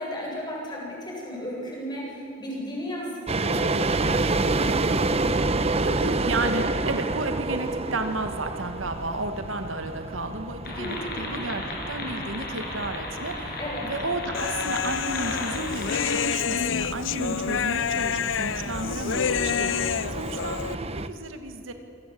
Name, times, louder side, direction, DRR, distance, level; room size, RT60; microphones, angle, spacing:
voice 1, 0.0-4.2 10.8-11.1 13.6-13.9 18.8-19.1, equal, 25° left, -3 dB, 8.0 m, -34 dB
sound 1, 3.3-21.1, right 2 dB, 30° right, 0.9 m, -30 dB
voice 2, 5.5-13.6 13.8-21.7, right 2 dB, 90° right, 6 dB, 2.2 m, -33 dB
sound 2, 10.6-16.2, left 2 dB, 55° left, 6.4 m, -35 dB
Human voice, 14.3-20.8, left 7 dB, 70° left, 0.6 m, -28 dB
26.5 x 18.0 x 8.7 m, 2.8 s
head